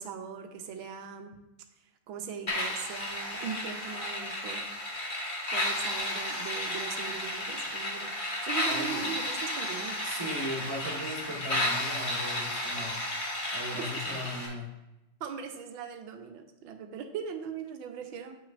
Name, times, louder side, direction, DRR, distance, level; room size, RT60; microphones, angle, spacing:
voice 1, 0.0-1.3 2.1-4.7 5.5-10.0 13.4-13.5 15.2-18.3, right 7 dB, 85° right, 6 dB, 1.5 m, -40 dB
sound 1, 2.5-14.5, left 1 dB, 30° left, 1.4 m, -33 dB
voice 2, 8.7-9.1 10.0-13.0 13.5-14.7, equal, 15° right, -2 dB, 1.0 m, -37 dB
8.9 x 6.1 x 2.5 m, 0.96 s
omnidirectional pair, 2.1 m